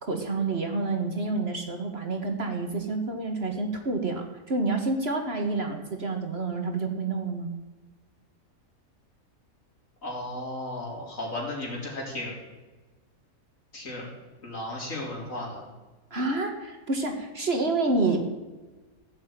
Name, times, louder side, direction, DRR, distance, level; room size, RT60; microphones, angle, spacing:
voice 1, 0.1-7.6 16.1-18.2, right 3 dB, 45° right, 4 dB, 1.9 m, -28 dB
voice 2, 10.0-12.4 13.7-14.1 14.4-15.6, left 1 dB, 60° left, -2 dB, 4.4 m, -34 dB
16.0 x 7.3 x 9.1 m, 1.2 s
omnidirectional pair, 1.5 m